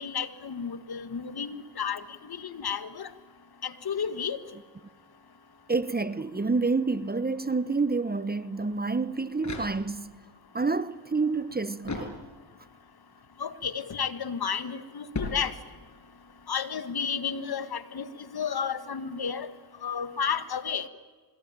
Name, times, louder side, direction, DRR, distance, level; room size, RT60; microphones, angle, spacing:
voice 1, 0.0-3.1 3.6-4.4 13.4-15.5 16.5-18.1 18.3-19.5 19.8-20.9, left 7 dB, 55° left, 1.8 m, -32 dB
voice 2, 5.7-10.1 10.5-12.2, right 4 dB, 20° right, 1.0 m, -28 dB
sound 1, 9.1-10.3 11.8-12.7 15.1-16.0, left 3 dB, 40° left, 6.5 m, -38 dB
25.5 x 21.5 x 9.0 m
cardioid pair, 65°, 45 cm